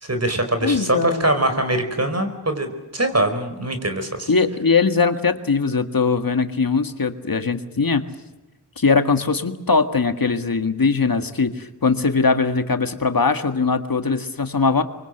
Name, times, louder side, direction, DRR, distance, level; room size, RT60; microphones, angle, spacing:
voice 1, 0.0-2.7 2.9-4.3, right 1 dB, 40° right, 7 dB, 4.9 m, -22 dB
voice 2, 0.6-1.3 4.3-8.0 8.8-14.8, left 4 dB, 60° left, 8 dB, 1.8 m, -20 dB
25.0 x 24.0 x 8.0 m, 1.1 s
wide cardioid pair, 55°, 38 cm